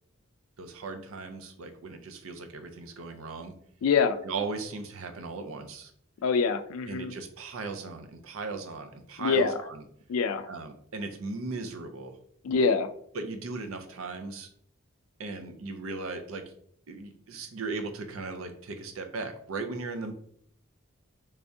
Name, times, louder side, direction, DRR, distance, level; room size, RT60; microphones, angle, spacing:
voice 1, 0.6-3.5 4.2-5.9 6.9-9.8 10.5-12.2 13.1-14.5 15.2-16.4 16.9-20.1, right 3 dB, 75° right, 6 dB, 0.5 m, -37 dB
voice 2, 3.8-4.2 6.2-7.1 9.2-9.5 10.1-10.5 12.4-12.9, left 5 dB, 85° left, 10 dB, 0.3 m, -25 dB
3.4 x 3.3 x 2.6 m, 0.64 s
head